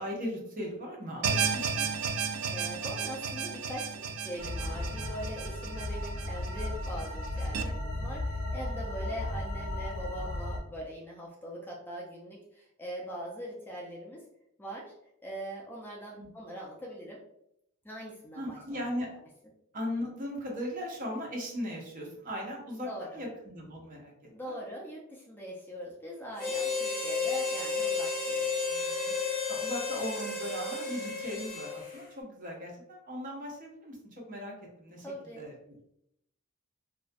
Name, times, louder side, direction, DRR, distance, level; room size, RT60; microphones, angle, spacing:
voice 1, 0.0-1.9 16.2-16.3 18.4-19.1 19.7-24.5 28.7-29.2 29.5-35.1 35.4-35.8, equal, 40° right, -1 dB, 0.6 m, -38 dB
sound 1, 1.2-7.6, right 6 dB, 80° right, 0.3 m, -33 dB
voice 2, 2.5-14.2 14.6-14.9 15.2-17.2 17.8-18.9 22.8-23.2 24.3-28.4 35.0-35.5, equal, 10° left, -3 dB, 0.3 m, -42 dB
sound 2, 4.4-10.6, left 1 dB, 75° left, 0.5 m, -35 dB
Harmonica, 26.4-32.0, left 4 dB, 45° left, 0.7 m, -32 dB
2.3 x 2.1 x 2.5 m, 0.77 s
head